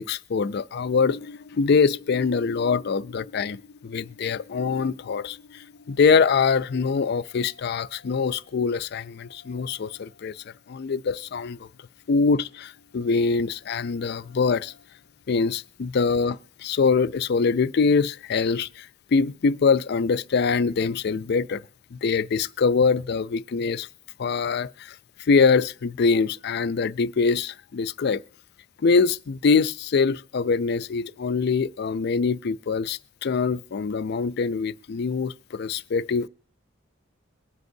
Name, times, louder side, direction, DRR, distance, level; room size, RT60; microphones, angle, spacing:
voice 1, 0.0-10.4 10.7-11.7 12.1-14.7 15.3-21.6 21.9-23.9 24.2-25.0 25.3-28.2 28.8-36.3, left 5 dB, 55° left, 0.4 m, -24 dB
23.0 x 7.9 x 2.7 m
head